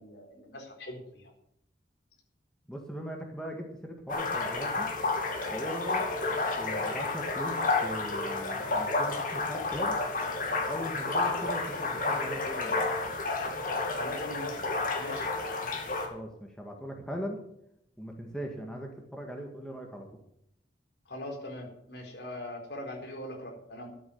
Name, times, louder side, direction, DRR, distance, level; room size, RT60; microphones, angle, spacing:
voice 1, 0.0-1.3 14.0-14.6 15.0-15.3 21.1-23.9, left 1 dB, 65° left, 3 dB, 4.1 m, -41 dB
voice 2, 2.7-4.9 5.5-6.0 6.6-10.0 10.6-12.8 16.1-17.4 18.0-20.1, equal, 5° left, 1 dB, 1.8 m, -39 dB
sound 1, 4.1-16.1, left 3 dB, 45° left, 2.4 m, -31 dB
12.5 x 8.8 x 7.0 m, 0.75 s
head